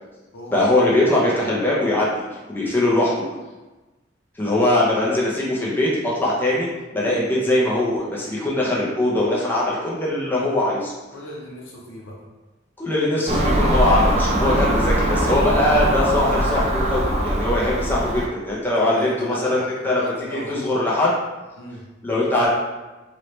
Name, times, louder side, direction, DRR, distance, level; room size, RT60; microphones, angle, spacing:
voice 1, 0.5-2.1 2.5-3.1 4.4-10.9 12.8-21.1 22.0-22.5, left 1 dB, 10° left, -6 dB, 0.6 m, -21 dB
voice 2, 11.1-12.2 18.7-20.8 21.6-21.9, left 1 dB, 70° left, -2 dB, 0.7 m, -36 dB
Car passing by / Engine, 13.3-18.3, right 1 dB, 35° right, 0.4 m, -21 dB
3.0 x 2.7 x 3.1 m, 1.1 s
head